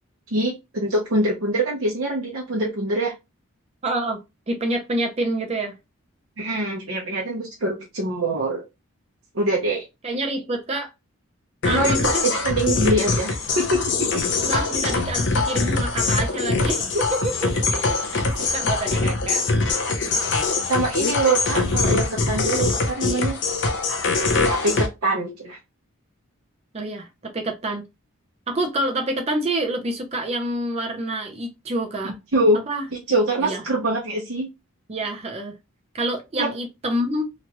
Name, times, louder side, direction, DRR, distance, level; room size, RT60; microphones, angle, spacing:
voice 1, 0.3-3.1 6.4-8.6 9.3-9.8 11.7-14.2 20.7-23.4 24.5-25.6 32.0-32.6 32.9-34.5 36.4-36.5, right 1 dB, 70° right, 0.7 m, -24 dB
voice 2, 3.8-4.2 4.5-5.7 10.0-10.9 11.6-12.3 14.4-19.5 26.7-27.8 28.5-32.1 32.7-32.8 33.4-33.6 34.9-35.5 35.9-37.3, right 1 dB, 30° right, 0.5 m, -27 dB
sound 1, 11.6-24.9, left 3 dB, 55° left, 0.6 m, -23 dB
3.0 x 2.4 x 2.9 m
head